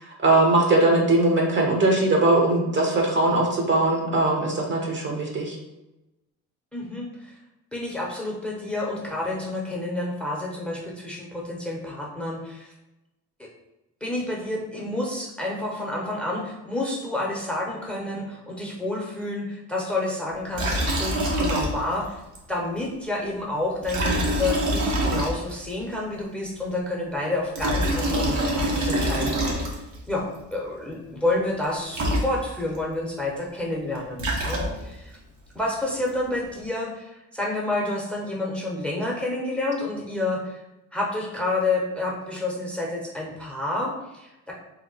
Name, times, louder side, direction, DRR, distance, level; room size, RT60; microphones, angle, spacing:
voice 1, 0.2-5.6, right 2 dB, 40° right, 0 dB, 0.7 m, -20 dB
voice 2, 6.7-7.3 7.7-12.7 14.0-22.2 22.5-29.8 30.1-30.2 30.5-35.2 35.5-40.6 40.9-44.5, left 2 dB, 5° left, -2 dB, 0.7 m, -29 dB
Liquid, 20.5-22.1 22.3-22.4 23.8-25.7 27.3-30.0 31.6-31.7 31.9-32.8 33.9-35.0, right 1 dB, 70° right, 0.8 m, -25 dB
2.8 x 2.1 x 3.8 m, 0.98 s
cardioid pair, 90°, 30 cm